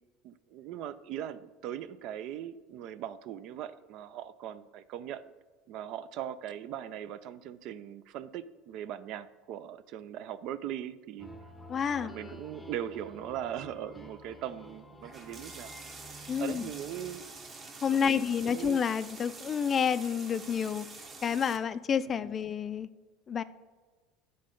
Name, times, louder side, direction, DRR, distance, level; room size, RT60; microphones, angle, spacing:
voice 1, 0.2-5.3 5.7-11.3 11.8-15.7 16.4-17.2 17.9-18.8 22.1-22.2, right 10 dB, 60° right, 14 dB, 0.4 m, -40 dB
sound 1, 11.2-17.8, equal, 5° left, 0.7 m, -50 dB
voice 2, 11.7-12.1 16.3-16.7 17.8-20.9 21.2-22.9 23.3-23.4, left 7 dB, 30° left, 14 dB, 0.3 m, -29 dB
sound 2, 15.0-21.6, right 3 dB, 30° right, 1.0 m, -47 dB
9.4 x 3.8 x 5.2 m, 1.4 s
supercardioid pair, 115°, 0 cm